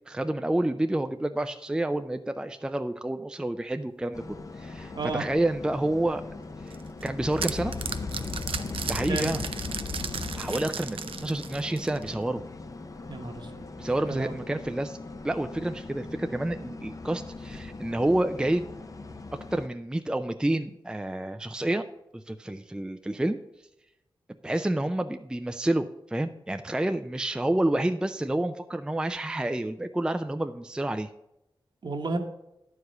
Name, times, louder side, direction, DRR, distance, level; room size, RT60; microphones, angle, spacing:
voice 1, 0.1-6.2 6.6-6.7 7.0-7.7 8.9-9.4 10.3-12.4 13.8-15.0 15.2-18.7 19.5-21.8 22.1-23.4 24.4-31.1, right 1 dB, 10° right, 8 dB, 0.4 m, -29 dB
sound 1, 4.1-19.7, left 3 dB, 40° left, 0.6 m, -39 dB
sound 2, 6.7-12.2, right 6 dB, 85° right, 0.5 m, -35 dB
voice 2, 13.1-13.5 14.1-14.3 31.8-32.2, right 3 dB, 60° right, 5 dB, 1.2 m, -31 dB
10.5 x 4.8 x 6.5 m, 0.87 s
wide cardioid pair, 90°, 9 cm